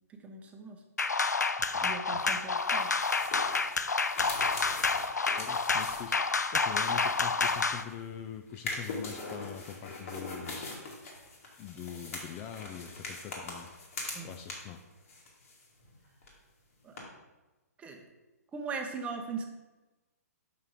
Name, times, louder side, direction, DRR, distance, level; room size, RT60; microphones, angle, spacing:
voice 1, 0.1-0.8 1.8-3.0 14.1-14.3 16.8-17.0 17.8-18.0 18.5-19.4, right 4 dB, 15° right, 4 dB, 0.8 m, -39 dB
sound 1, 1.0-7.8, left 4 dB, 85° left, 0.4 m, -29 dB
sound 2, 2.6-8.1 8.5-14.8 15.1-16.3 17.0-17.1, left 3 dB, 55° left, 2.1 m, -42 dB
voice 2, 5.4-10.6 11.6-13.7 14.2-14.8, left 9 dB, 25° left, 6 dB, 0.4 m, -43 dB
6.0 x 5.5 x 4.9 m, 1.1 s
figure-of-eight pair, 125°, 9 cm